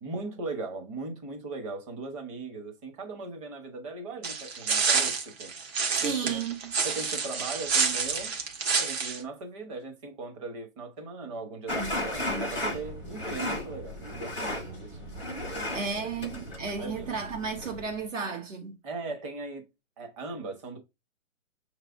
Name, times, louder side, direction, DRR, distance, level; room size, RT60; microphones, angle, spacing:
voice 1, 0.0-5.5 6.0-6.4 6.8-8.3 8.8-15.1 15.4-15.8 16.3-17.1 18.8-19.7 20.0-20.8, right 3 dB, 25° right, 1.0 m, -39 dB
sound 1, 4.2-9.2, right 5 dB, 50° right, 1.4 m, -28 dB
voice 2, 6.0-6.7 11.8-12.5 15.7-18.8, right 5 dB, 70° right, 1.2 m, -34 dB
sound 2, 11.7-18.0, left 1 dB, 5° right, 0.6 m, -35 dB
6.4 x 3.3 x 2.5 m
hypercardioid pair, 150°, 40 cm